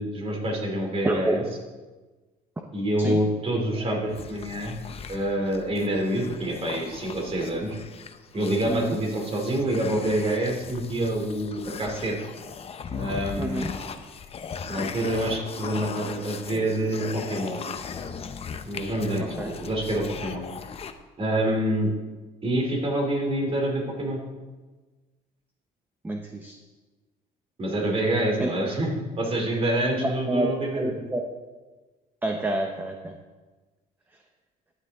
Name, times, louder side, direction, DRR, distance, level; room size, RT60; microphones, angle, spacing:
voice 1, 0.0-1.4 2.7-4.8 5.1-7.7 8.3-12.2 12.9-13.8 14.7-17.6 18.7-20.4 21.2-21.9 22.4-24.2 27.6-28.9 29.2-30.9, right 1 dB, 35° right, 1 dB, 3.0 m, -27 dB
voice 2, 1.0-1.4 3.0-3.2 3.5-3.6 8.7-9.0 13.4-13.7 19.2-19.5 26.0-26.6 28.4-28.5 30.0-31.2 32.2-33.1, right 1 dB, 10° right, 2 dB, 0.9 m, -28 dB
sound 1, 4.1-20.9, left 6 dB, 35° left, 0.7 m, -38 dB
13.0 x 9.5 x 3.7 m, 1.3 s
cardioid pair, 110°, 17 cm